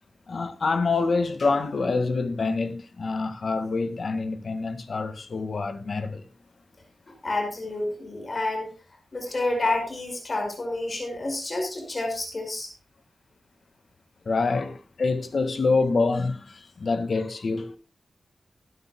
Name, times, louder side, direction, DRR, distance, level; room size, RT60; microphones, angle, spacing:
voice 1, 0.3-6.3 9.4-9.5 14.3-17.8, left 3 dB, 55° left, 1.8 m, -26 dB
voice 2, 7.2-8.7 9.1-12.7, left 2 dB, 35° left, 5.0 m, -29 dB
20.5 x 9.3 x 2.2 m
wide cardioid pair, 140°, 0 cm